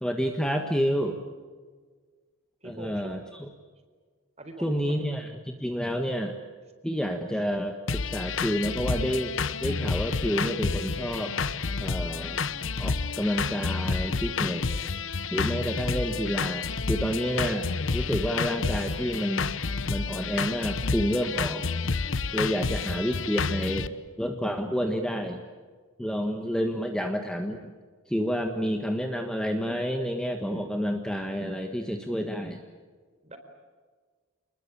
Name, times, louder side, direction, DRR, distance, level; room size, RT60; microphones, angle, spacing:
voice 1, 0.0-1.2 2.6-3.2 4.6-6.4 6.8-11.4 11.8-12.5 12.8-14.7 15.3-19.5 19.9-21.6 22.3-25.4 26.0-27.7 28.1-32.6, equal, 5° left, 4 dB, 1.4 m, -29 dB
voice 2, 2.6-3.2 4.4-5.1 22.8-22.9 33.2-33.4, right 1 dB, 30° right, 7 dB, 4.2 m, -43 dB
sound 1, 7.9-23.9, left 4 dB, 60° left, 1.0 m, -30 dB
29.0 x 21.0 x 8.7 m, 1.5 s
head